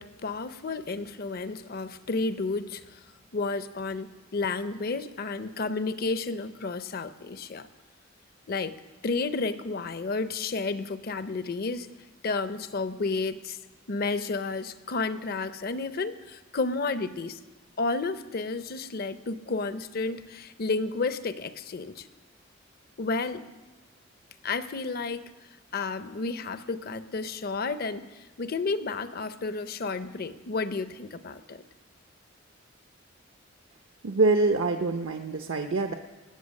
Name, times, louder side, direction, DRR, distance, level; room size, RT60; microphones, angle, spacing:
voice 1, 0.0-3.0 3.3-7.7 8.5-8.8 9.0-11.9 12.2-13.6 13.9-17.4 17.8-22.1 23.0-23.4 24.4-25.3 25.7-31.6, left 3 dB, 50° left, 12 dB, 0.6 m, -31 dB
voice 2, 34.0-35.9, right 3 dB, 75° right, 5 dB, 0.6 m, -25 dB
19.5 x 7.7 x 6.4 m, 1.2 s
head